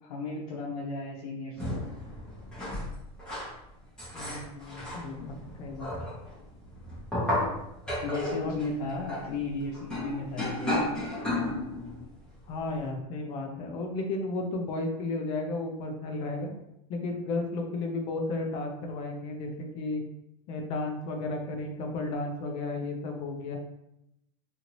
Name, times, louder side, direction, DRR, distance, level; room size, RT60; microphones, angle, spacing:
voice 1, 0.0-1.8 8.0-10.9, left 3 dB, 80° left, -6 dB, 0.7 m, -35 dB
sound 1, 1.6-3.5 4.0-12.0 12.5-12.6, left 1 dB, 5° left, 1.1 m, -33 dB
voice 2, 4.1-6.0 8.4-8.6 12.5-16.5 16.9-20.0 20.5-23.6, left 2 dB, 25° left, 3 dB, 0.4 m, -33 dB
2.8 x 2.5 x 3.0 m, 0.84 s
supercardioid pair, 170°, 19 cm